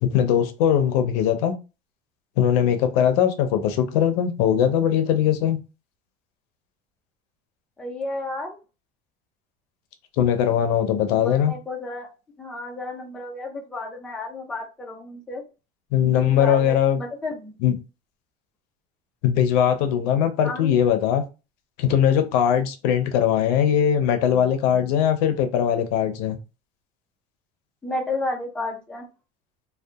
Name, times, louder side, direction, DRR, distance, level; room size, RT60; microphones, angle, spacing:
voice 1, 0.0-1.5 2.4-5.6 10.2-11.5 15.9-17.0 17.6-17.7 19.2-21.2 21.8-26.4, left 9 dB, 85° left, 0.6 m, -20 dB
voice 2, 7.8-8.6 11.1-12.1 12.4-15.4 16.0-17.5 20.4-20.8 27.8-29.1, left 2 dB, 5° left, 0.5 m, -32 dB
2.7 x 2.2 x 2.3 m
cardioid pair, 160°, 20 cm